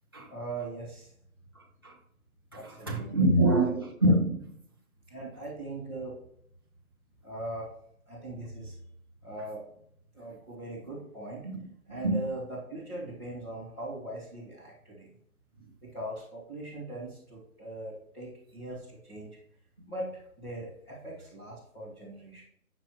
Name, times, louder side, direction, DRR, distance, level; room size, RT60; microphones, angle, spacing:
voice 1, 0.3-1.1 2.5-3.8 5.1-6.2 7.2-7.7 8.1-8.7 9.2-9.8 10.1-11.4 11.9-15.1 15.8-19.3 19.9-22.4, right 2 dB, 5° left, -11 dB, 1.1 m, -40 dB
voice 2, 1.5-2.0 2.5-4.5 11.4-12.3, right 1 dB, 15° right, -3 dB, 0.6 m, -26 dB
9.8 x 6.0 x 3.0 m, 0.68 s
figure-of-eight pair, 160°, 43 cm